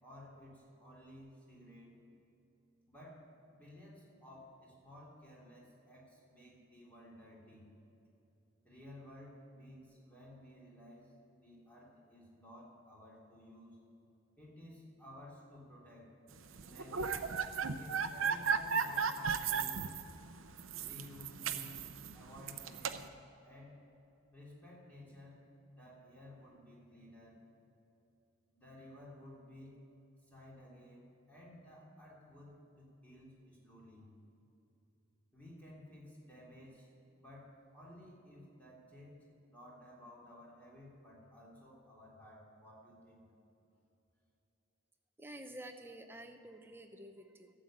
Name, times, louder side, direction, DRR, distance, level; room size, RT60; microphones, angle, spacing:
voice 1, 0.0-2.0 2.9-7.7 8.6-11.1 11.4-13.8 14.3-16.1 16.6-17.2 17.8-19.8 20.8-23.0 23.4-23.8 24.3-27.4 28.5-29.8 30.2-34.1 35.3-36.9 37.1-43.2, left 1 dB, 10° left, -6 dB, 3.2 m, -55 dB
sound 1, 16.6-23.1, right 6 dB, 90° right, 0.7 m, -36 dB
voice 2, 45.2-47.5, right 1 dB, 10° right, 5 dB, 0.7 m, -50 dB
13.0 x 7.7 x 8.6 m, 2.9 s
head